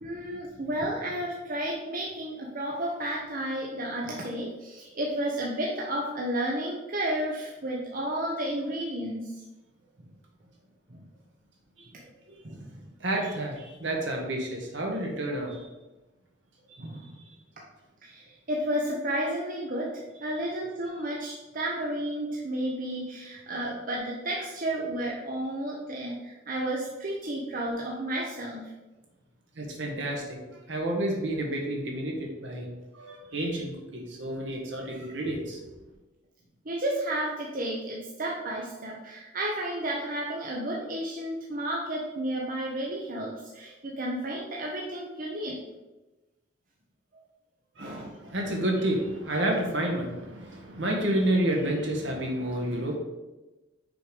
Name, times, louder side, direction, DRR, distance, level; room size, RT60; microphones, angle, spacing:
voice 1, 0.0-9.4 10.9-11.0 11.9-12.1 12.4-12.8 16.8-17.1 18.0-19.9 20.2-28.7 36.6-45.7 47.8-48.2, right 1 dB, 45° right, -2 dB, 0.9 m, -32 dB
voice 2, 13.0-15.6 29.6-32.7 32.9-35.7 47.8-52.9, right 1 dB, 65° right, 0 dB, 1.6 m, -30 dB
6.0 x 4.9 x 5.2 m, 1.1 s
head